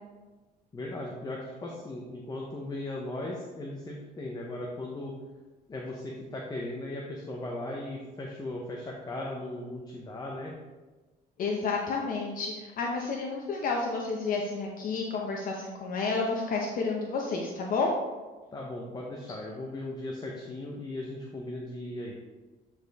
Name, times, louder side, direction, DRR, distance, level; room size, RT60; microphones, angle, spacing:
voice 1, 0.7-5.1 5.7-10.5 18.5-22.2, left 1 dB, 25° left, -1 dB, 1.0 m, -37 dB
voice 2, 11.4-18.0, left 4 dB, 55° left, 0 dB, 0.9 m, -30 dB
8.8 x 4.3 x 3.6 m, 1.3 s
cardioid pair, 110°, 17 cm